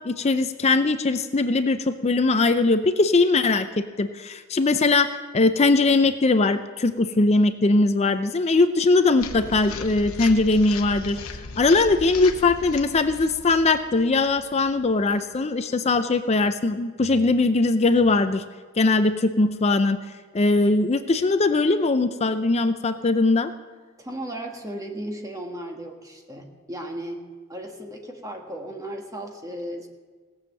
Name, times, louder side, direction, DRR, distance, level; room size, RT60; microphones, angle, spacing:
voice 1, 0.0-11.2 11.6-18.4 18.8-20.0 20.3-23.5, left 3 dB, 30° left, 10 dB, 0.5 m, -20 dB
sound 1, 9.2-15.4, left 4 dB, 75° left, 1.0 m, -38 dB
voice 2, 24.0-29.9, right 1 dB, 15° right, 2 dB, 1.4 m, -35 dB
17.5 x 7.2 x 7.6 m, 1.4 s
head